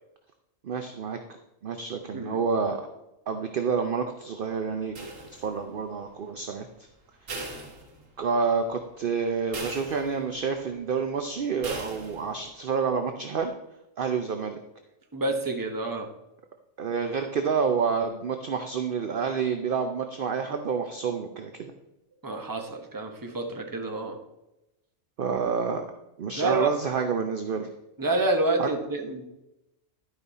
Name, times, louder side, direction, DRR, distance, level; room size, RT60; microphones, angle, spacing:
voice 1, 0.6-1.2 1.6-2.8 3.3-5.0 5.3-6.7 8.2-13.5 14.0-14.6 16.8-21.7 25.2-25.8 26.2-27.7 28.6-28.7, right 5 dB, 50° right, 6 dB, 0.7 m, -28 dB
sound 1, 4.9-5.8 7.3-8.4 8.8-8.9 9.5-10.4 11.6-12.4, right 2 dB, 80° right, 1.8 m, -39 dB
voice 2, 15.1-16.1 22.2-24.2 26.4-26.7 28.0-29.3, right 2 dB, 15° right, 3 dB, 1.0 m, -28 dB
11.0 x 5.3 x 4.1 m, 0.91 s
omnidirectional pair, 1.3 m